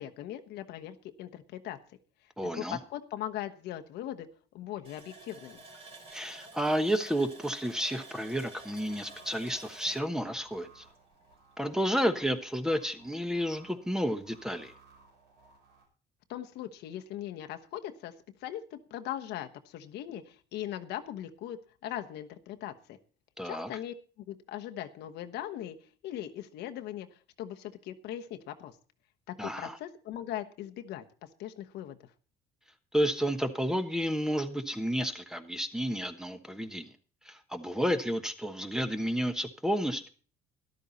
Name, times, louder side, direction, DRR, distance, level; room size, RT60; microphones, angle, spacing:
voice 1, 0.0-1.8 2.5-4.3 4.5-5.6 16.3-18.1 18.4-23.0 23.4-25.8 26.0-27.1 27.4-28.7 29.3-32.0, left 12 dB, 80° left, 6 dB, 1.2 m, -40 dB
voice 2, 2.4-2.8 6.1-10.8 11.6-14.7 23.4-23.7 29.4-29.8 32.9-36.8 37.2-40.1, equal, 5° right, 9 dB, 1.2 m, -31 dB
Water tap faucet, 4.8-11.3 11.7-11.8 12.2-12.4, right 2 dB, 35° right, 3.5 m, -51 dB
sound 1, 8.6-15.8, right 3 dB, 85° right, 6.1 m, -60 dB
13.0 x 12.0 x 4.1 m, 0.40 s
cardioid pair, 110°, 17 cm